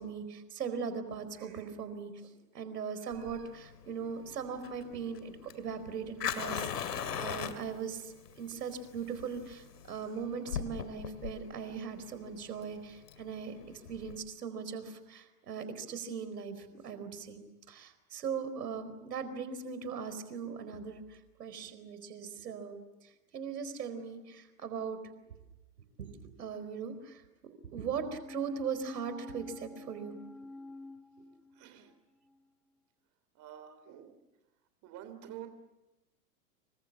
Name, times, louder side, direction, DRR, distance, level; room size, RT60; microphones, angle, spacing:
voice 1, 0.0-17.4 17.7-25.0 26.0-30.1, right 6 dB, 85° right, 10 dB, 4.6 m, -40 dB
Fire, 3.1-14.2, left 8 dB, 85° left, 2.6 m, -40 dB
sound 1, 28.2-31.9 32.3-32.4, left 2 dB, ahead, 0.8 m, -47 dB
voice 2, 31.5-32.0 33.3-34.2 34.8-35.5, right 11 dB, 35° right, 8 dB, 3.4 m, -48 dB
27.5 x 25.5 x 7.5 m, 1.0 s
hypercardioid pair, 120°, 47 cm